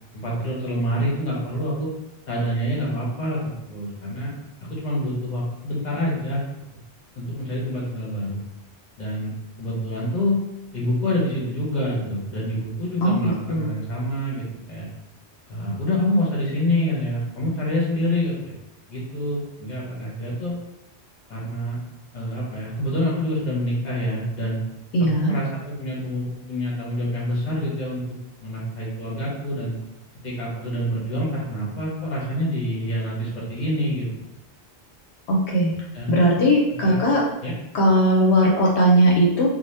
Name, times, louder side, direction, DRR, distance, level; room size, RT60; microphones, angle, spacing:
voice 1, 0.1-1.9 2.3-4.3 4.7-6.5 7.1-8.4 9.0-9.3 9.6-10.4 10.7-14.9 15.5-18.5 18.9-20.5 21.3-21.8 22.1-24.6 25.0-29.7 30.2-34.3 35.9-36.3 36.7-37.0 37.4-37.5, left 1 dB, 45° left, -5 dB, 0.9 m, -26 dB
voice 2, 13.0-13.7 24.9-25.3 35.3-35.7 36.1-37.2 37.7-39.5, equal, 75° left, -2 dB, 0.8 m, -18 dB
2.7 x 2.2 x 3.2 m, 0.89 s
omnidirectional pair, 1.1 m